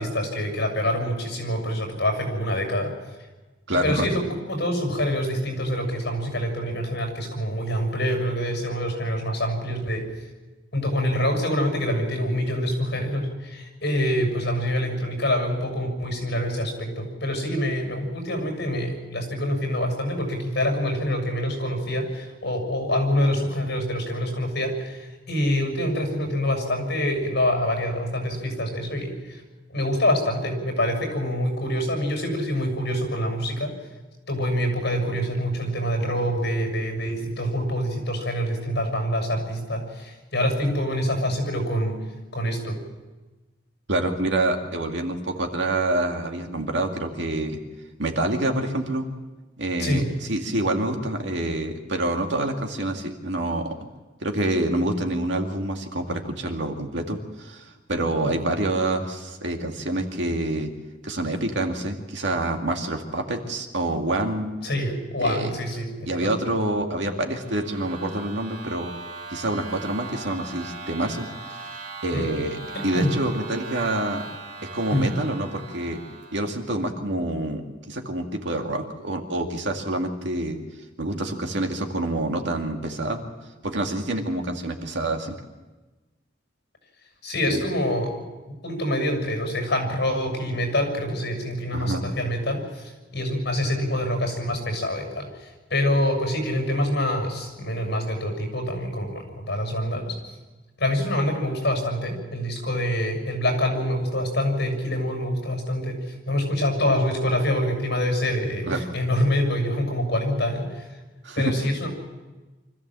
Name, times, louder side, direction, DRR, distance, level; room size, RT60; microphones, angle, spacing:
voice 1, 0.0-2.9 3.7-10.1 10.7-29.4 29.7-33.7 34.3-42.0 42.3-42.8 49.8-50.0 58.2-58.3 64.6-66.3 72.1-72.2 72.7-73.2 74.9-75.1 87.2-88.2 88.6-100.2 100.8-110.9 111.4-111.9, left 1 dB, 60° left, 3 dB, 6.7 m, -26 dB
voice 2, 3.7-4.1 43.9-47.6 48.0-49.1 49.6-50.0 50.3-53.8 54.2-60.7 61.0-64.5 65.2-65.5 66.1-68.9 69.3-71.7 72.0-74.2 74.7-76.0 76.3-80.6 81.0-83.2 83.6-85.4 87.5-87.6 91.7-92.0 108.7-108.8 111.2-111.5, right 1 dB, 65° right, 3 dB, 2.2 m, -27 dB
sound 1, 67.0-76.7, right 4 dB, 40° right, 2.3 m, -39 dB
25.0 x 14.5 x 7.6 m, 1.2 s
head